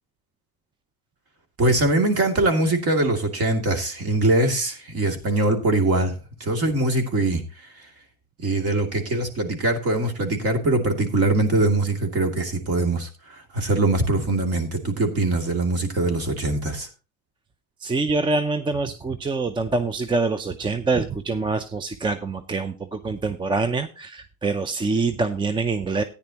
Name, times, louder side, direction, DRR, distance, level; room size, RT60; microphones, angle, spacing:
voice 1, 1.6-7.4 8.4-16.9, right 2 dB, 40° right, 5 dB, 2.7 m, -22 dB
voice 2, 17.8-26.0, right 3 dB, 15° right, 11 dB, 0.5 m, -25 dB
14.0 x 9.9 x 2.9 m, 0.32 s
supercardioid pair, 120°, 37 cm